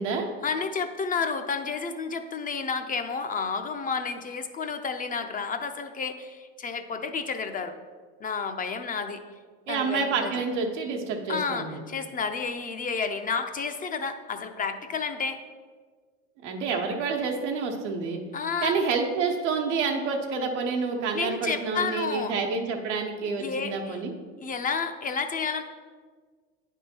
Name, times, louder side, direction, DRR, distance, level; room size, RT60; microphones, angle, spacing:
voice 1, 0.4-7.7 8.2-9.2 9.7-10.3 11.3-15.4 18.3-18.8 21.1-22.3 23.4-24.0 24.4-25.6, left 5 dB, 25° left, 7 dB, 0.5 m, -31 dB
voice 2, 9.7-11.8 16.4-18.2 18.6-24.1, right 4 dB, 90° right, 2 dB, 1.1 m, -28 dB
9.2 x 3.6 x 4.3 m, 1.5 s
supercardioid pair, 95°, 34 cm